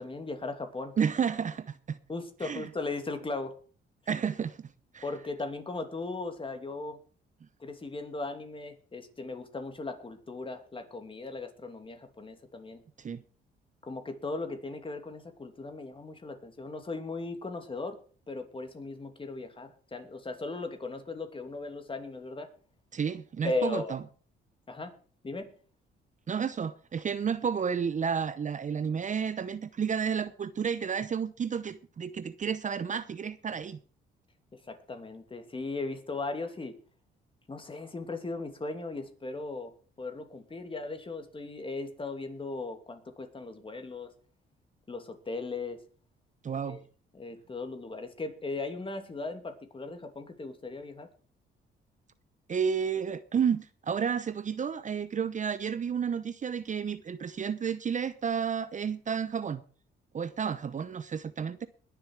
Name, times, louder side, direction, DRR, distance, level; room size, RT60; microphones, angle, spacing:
voice 1, 0.0-0.9 2.1-3.5 5.0-7.0 7.6-12.8 13.8-18.0 18.3-22.5 23.4-24.0 24.7-24.9 25.2-25.5 34.5-36.8 37.5-39.7 40.0-44.1 44.9-45.8 46.7-46.8 47.1-51.1, left 3 dB, 25° left, 2.7 m, -37 dB
voice 2, 1.0-2.0 2.4-2.7 4.1-5.0 13.0-13.2 22.9-24.0 26.3-33.8 46.4-46.8 52.5-59.6 60.1-61.7, right 7 dB, 40° right, 0.8 m, -31 dB
21.0 x 7.0 x 4.8 m
cardioid pair, 90°, 20 cm